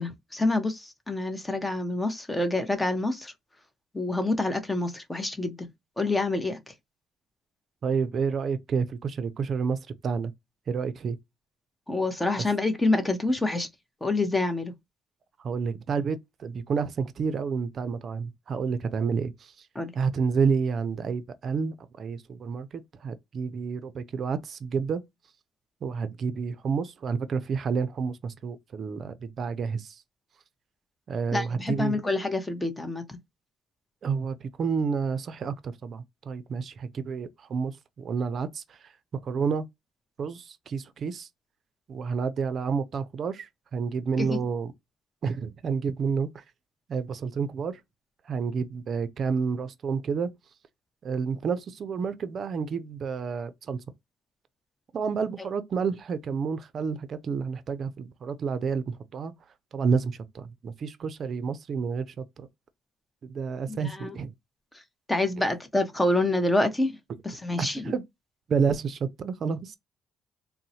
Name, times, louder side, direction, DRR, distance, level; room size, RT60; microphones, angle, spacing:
voice 1, 0.0-3.3 3.9-5.6 6.0-6.7 11.9-13.7 14.0-14.7 19.7-19.9 31.3-33.2 44.2-44.4 63.7-64.2 65.1-67.0 67.2-67.9, left 2 dB, 15° left, 0.7 m, -27 dB
voice 2, 7.8-9.8 10.0-10.3 10.7-11.2 15.4-19.3 20.0-25.0 25.8-29.9 31.1-32.0 34.0-38.6 39.2-39.7 40.2-41.3 41.9-44.7 45.2-46.3 46.9-47.8 48.3-50.3 51.0-53.8 54.9-59.3 59.7-62.5 63.2-64.3 67.6-68.0 68.5-69.7, right 5 dB, 50° right, 0.4 m, -29 dB
3.8 x 2.1 x 2.7 m
cardioid pair, 90°, 0 cm